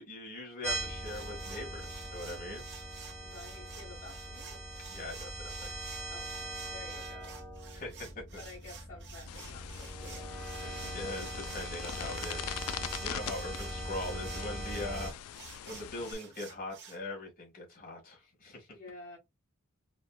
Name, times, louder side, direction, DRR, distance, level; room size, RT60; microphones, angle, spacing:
voice 1, 0.0-2.6 4.9-5.8 7.7-8.1 10.9-18.7, left 2 dB, 40° left, 1.9 m, -42 dB
sound 1, 0.6-15.1, right 1 dB, 5° left, 1.0 m, -41 dB
sound 2, 1.0-17.0, right 7 dB, 55° right, 0.8 m, -52 dB
voice 2, 3.2-4.6 6.1-7.4 8.4-10.4 10.6-11.1 18.7-19.2, left 3 dB, 60° left, 1.4 m, -51 dB
sound 3, 9.3-16.1, left 10 dB, 75° left, 0.3 m, -43 dB
4.3 x 2.2 x 2.2 m
head